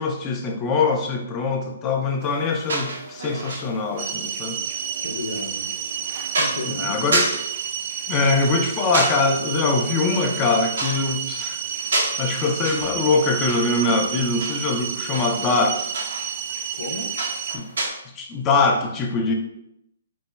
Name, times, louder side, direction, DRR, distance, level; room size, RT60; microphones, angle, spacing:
voice 1, 0.0-4.6 6.7-7.3 8.1-11.6 12.2-15.9 17.5-17.7 18.2-19.3, left 3 dB, 20° left, 2 dB, 0.5 m, -23 dB
sound 1, 2.2-17.9, right 2 dB, 80° right, 0.7 m, -31 dB
sound 2, 4.0-17.6, right 8 dB, 40° right, 0.3 m, -30 dB
voice 2, 5.0-5.7 6.3-7.1 16.7-17.1, left 2 dB, 90° left, 3 dB, 0.6 m, -33 dB
4.0 x 2.1 x 3.4 m, 0.78 s
hypercardioid pair, 155°, 0 cm